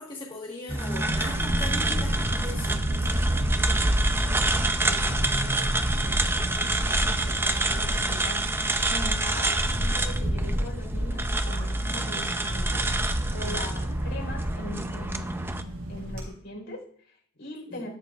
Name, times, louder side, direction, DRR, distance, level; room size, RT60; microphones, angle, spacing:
voice 1, 0.0-3.5 13.4-13.6 17.7-17.8, left 2 dB, 25° left, -3 dB, 1.4 m, -39 dB
sound 1, 0.7-15.6, right 2 dB, 10° right, 0.5 m, -28 dB
sound 2, 1.0-16.2, right 1 dB, 80° right, 1.4 m, -36 dB
Camera, 1.5-16.3, equal, 45° right, 4.8 m, -32 dB
voice 2, 4.2-17.9, left 1 dB, 65° left, 0 dB, 4.2 m, -41 dB
13.5 x 13.0 x 2.4 m, 0.63 s
head